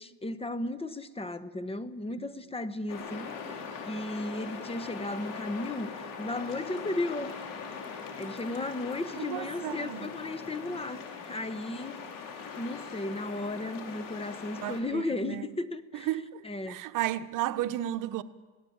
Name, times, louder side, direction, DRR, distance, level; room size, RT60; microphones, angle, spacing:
voice 1, 0.0-7.3 8.2-12.0 12.6-16.1 16.4-16.8, left 2 dB, 15° left, 1.2 m, -35 dB
sound 1, 2.9-14.8, left 6 dB, 75° left, 4.9 m, -41 dB
voice 2, 9.2-10.1 14.6-15.5 16.1-18.2, right 13 dB, 65° right, 1.1 m, -33 dB
27.0 x 18.0 x 8.8 m
cardioid pair, 110°, 34 cm